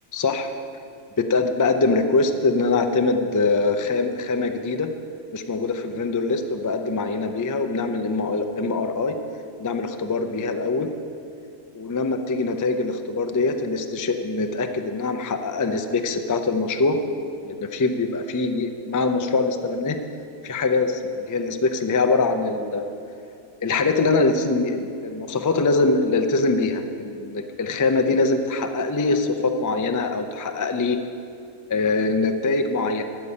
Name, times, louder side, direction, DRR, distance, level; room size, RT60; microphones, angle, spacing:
voice 1, 0.1-0.5 1.2-4.9 5.3-9.2 9.6-10.9 11.7-17.0 17.4-20.0 20.4-22.9 23.6-31.0 31.7-33.0, left 3 dB, 30° left, 6 dB, 0.3 m, -23 dB
12.5 x 5.4 x 8.6 m, 2.6 s
omnidirectional pair, 1.3 m